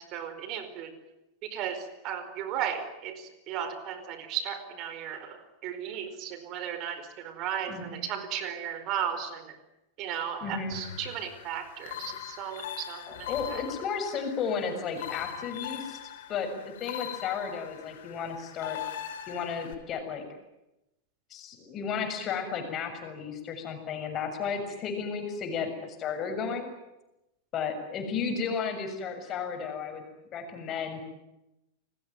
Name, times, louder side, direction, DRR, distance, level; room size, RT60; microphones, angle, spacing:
voice 1, 0.1-0.9 1.4-9.6 10.0-13.6, right 9 dB, 40° right, 11 dB, 4.7 m, -35 dB
voice 2, 7.7-8.0 10.4-10.8 13.1-16.0 16.3-18.8 19.3-20.2 21.3-25.7 26.0-26.7 27.5-30.0 30.3-31.0, left 6 dB, 30° left, 6 dB, 7.0 m, -33 dB
sound 1, 10.7-19.7, left 11 dB, 55° left, 3.2 m, -41 dB
29.5 x 20.0 x 9.5 m, 0.91 s
figure-of-eight pair, 90°, 0 cm